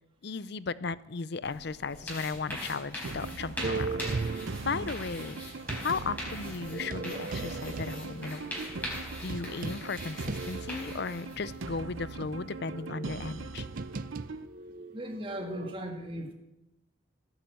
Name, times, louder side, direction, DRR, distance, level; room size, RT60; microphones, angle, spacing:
voice 1, 0.2-5.4 5.8-8.4 9.2-13.7, left 4 dB, 55° left, 17 dB, 0.6 m, -36 dB
sound 1, 1.4-11.6, equal, 10° left, 4.5 m, -42 dB
sound 2, 3.0-14.5, right 3 dB, 75° right, 0.8 m, -41 dB
sound 3, 3.6-5.9 6.7-11.1 11.5-11.6 12.2-15.7, right 4 dB, 40° right, 0.4 m, -38 dB
voice 2, 14.9-16.3, equal, 25° right, 3 dB, 1.6 m, -37 dB
17.5 x 9.0 x 7.7 m, 0.95 s
head